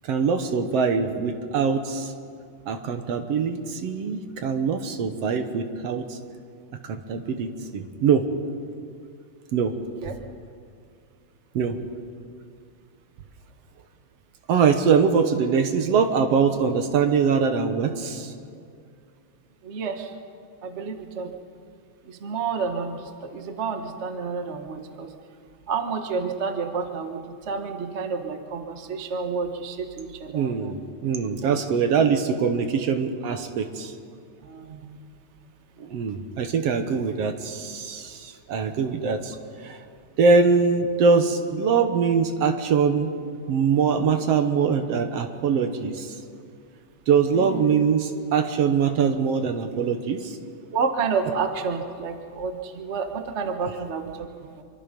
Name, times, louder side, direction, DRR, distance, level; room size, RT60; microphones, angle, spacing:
voice 1, 0.0-2.1 2.7-6.2 6.8-8.3 9.5-9.7 11.5-11.8 14.5-18.3 30.3-33.9 35.8-39.4 39.6-39.8 40.2-43.1 43.5-46.1 47.1-50.4, right 5 dB, 65° right, 7 dB, 2.0 m, -23 dB
voice 2, 19.6-20.1 20.6-21.3 22.0-25.1 25.7-30.8 31.4-31.6 34.4-35.0 47.3-47.6 50.7-54.6, right 5 dB, 45° right, 6 dB, 0.9 m, -30 dB
26.0 x 24.0 x 5.3 m, 2.3 s
omnidirectional pair, 3.4 m